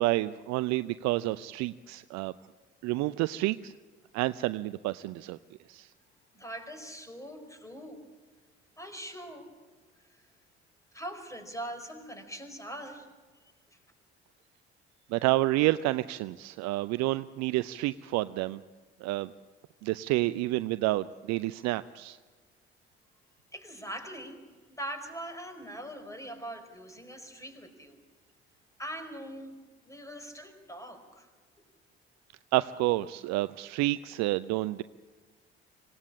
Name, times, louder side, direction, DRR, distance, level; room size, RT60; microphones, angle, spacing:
voice 1, 0.0-2.3 2.8-3.7 4.1-5.4 5.7-5.9 15.1-18.6 19.0-19.3 19.8-22.2 32.5-34.8, right 18 dB, 55° right, 15 dB, 0.6 m, -29 dB
voice 2, 6.3-8.0 8.8-9.5 10.9-13.1 13.7-13.8 23.5-24.4 24.7-28.0 28.8-29.6 29.8-31.3, right 1 dB, 10° left, 7 dB, 4.8 m, -42 dB
26.0 x 17.5 x 8.6 m, 1.4 s
figure-of-eight pair, 50°, 32 cm